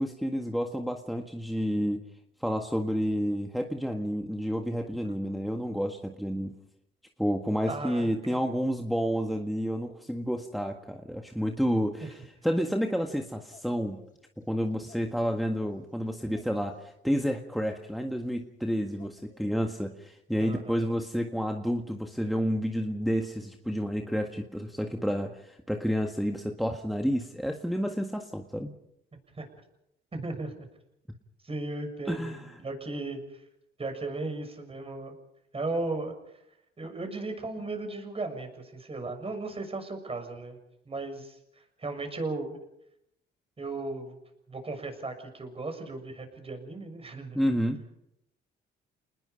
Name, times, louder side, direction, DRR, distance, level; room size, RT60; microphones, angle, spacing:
voice 1, 0.0-2.0 2.4-6.5 7.2-14.0 14.4-28.7 32.1-32.5 47.3-47.8, equal, ahead, 3 dB, 1.7 m, -30 dB
voice 2, 7.7-8.4 12.0-12.1 20.4-20.8 29.3-29.5 30.1-30.5 31.4-33.4 33.8-35.1 35.5-36.4 36.8-40.6 40.8-42.6 43.6-44.2 44.5-47.4, right 2 dB, 30° right, 6 dB, 6.6 m, -36 dB
sound 1, 13.5-15.4 16.3-16.9 17.6-18.4 18.8-19.6 20.1-20.2 20.4-20.9, left 4 dB, 40° left, 6.1 m, -55 dB
29.0 x 20.0 x 5.3 m, 0.79 s
cardioid pair, 90°, 20 cm